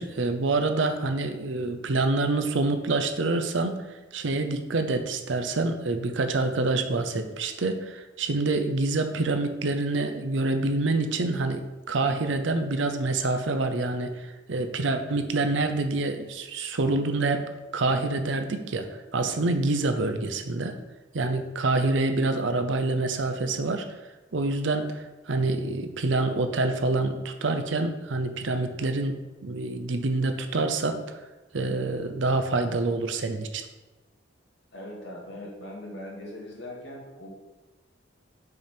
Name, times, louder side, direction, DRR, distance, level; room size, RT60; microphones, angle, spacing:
voice 1, 0.0-3.8 4.1-11.6 11.9-18.9 19.1-20.7 21.1-23.8 24.3-29.2 29.4-31.0 31.5-33.7, right 2 dB, 75° right, 7 dB, 0.7 m, -26 dB
voice 2, 34.7-37.3, left 1 dB, 70° left, -3 dB, 2.2 m, -40 dB
6.0 x 5.2 x 4.4 m, 1.2 s
head